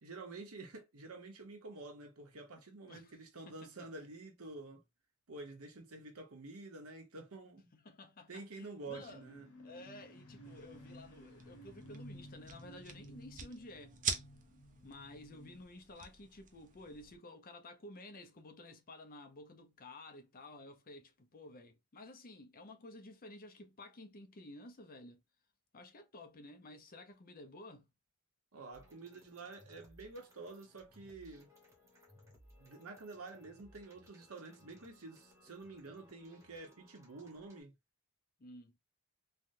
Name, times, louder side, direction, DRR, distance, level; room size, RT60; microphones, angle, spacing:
voice 1, 0.0-4.8 5.3-7.7 8.3-9.5 28.5-31.5 32.6-37.7, right 3 dB, 70° right, 1.0 m, -49 dB
voice 2, 2.9-3.2 3.5-3.8 7.7-9.2 9.6-14.0 14.8-25.2 25.7-27.9 38.4-38.7, left 2 dB, 40° left, 0.6 m, -53 dB
sound 1, 8.9-15.6, equal, 85° left, 1.2 m, -55 dB
sound 2, 10.4-17.2, right 6 dB, 35° right, 0.5 m, -46 dB
sound 3, 28.7-37.6, equal, 15° right, 1.0 m, -63 dB
3.4 x 2.2 x 2.6 m
head